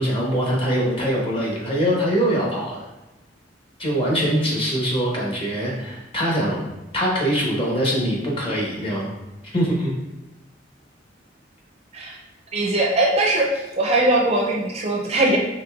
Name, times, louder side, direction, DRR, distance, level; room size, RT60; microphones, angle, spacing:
voice 1, 0.0-2.8 3.8-9.1 9.5-9.9, equal, 30° left, -4 dB, 0.9 m, -23 dB
voice 2, 12.5-13.5 13.8-15.4, right 2 dB, 35° right, -1 dB, 0.5 m, -20 dB
5.1 x 3.2 x 2.3 m, 1.0 s
head